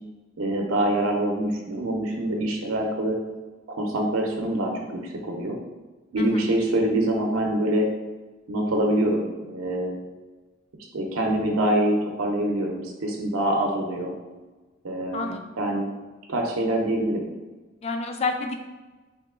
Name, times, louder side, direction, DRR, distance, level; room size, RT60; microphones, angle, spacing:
voice 1, 0.4-3.2 3.7-5.6 6.1-7.9 8.5-10.0 10.9-14.1 14.8-15.9 16.3-17.3, right 1 dB, 85° right, 1 dB, 0.6 m, -25 dB
voice 2, 6.2-6.5 15.1-15.4 17.8-18.6, left 3 dB, 30° left, 4 dB, 0.3 m, -29 dB
3.0 x 2.8 x 3.6 m, 1.3 s
head